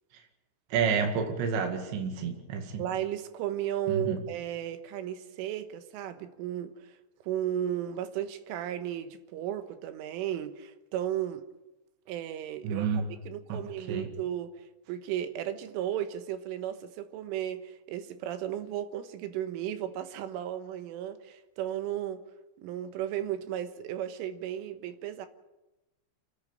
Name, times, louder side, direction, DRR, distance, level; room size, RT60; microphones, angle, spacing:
voice 1, 0.7-2.8 3.9-4.2 12.6-13.0 13.5-14.1, right 6 dB, 65° right, 3 dB, 4.3 m, -30 dB
voice 2, 2.8-7.0 7.2-11.4 12.1-12.9 13.3-14.5 14.9-22.2 22.6-25.3, right 11 dB, 85° right, 9 dB, 3.7 m, -34 dB
29.0 x 10.5 x 9.0 m, 1.0 s
omnidirectional pair, 5.7 m